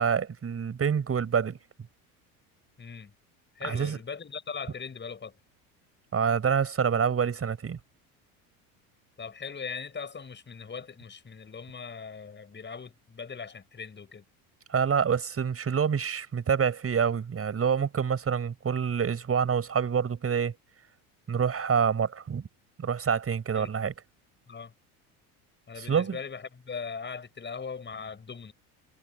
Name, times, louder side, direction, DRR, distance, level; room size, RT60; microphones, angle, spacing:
voice 1, 0.0-1.6 3.6-4.0 6.1-7.8 14.7-20.5 21.3-22.5 22.8-23.9 25.8-26.2, right 7 dB, 30° right, 7.1 m, -27 dB
voice 2, 2.8-3.1 3.6-5.4 9.2-14.2 23.5-23.7 24.5-24.7 25.7-28.5, left 5 dB, 25° left, 7.0 m, -40 dB
hypercardioid pair, 85°, 45 cm